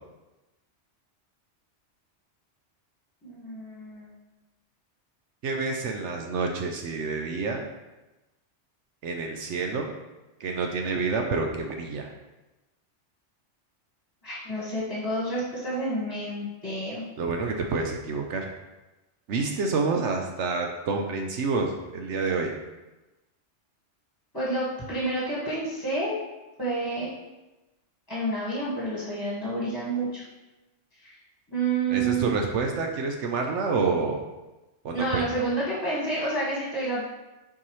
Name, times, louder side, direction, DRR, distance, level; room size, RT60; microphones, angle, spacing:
voice 1, 3.2-4.1 14.2-17.0 24.3-26.1 26.6-27.1 28.1-30.2 31.0-31.2 31.5-32.3 34.9-37.0, right 2 dB, 20° left, -8 dB, 1.7 m, -29 dB
voice 2, 5.4-7.7 9.0-9.9 10.4-12.1 17.2-18.5 19.3-22.5 31.9-34.2 34.8-35.2, right 4 dB, 75° right, 2 dB, 1.0 m, -28 dB
7.0 x 4.6 x 3.2 m, 1.1 s
omnidirectional pair, 1.2 m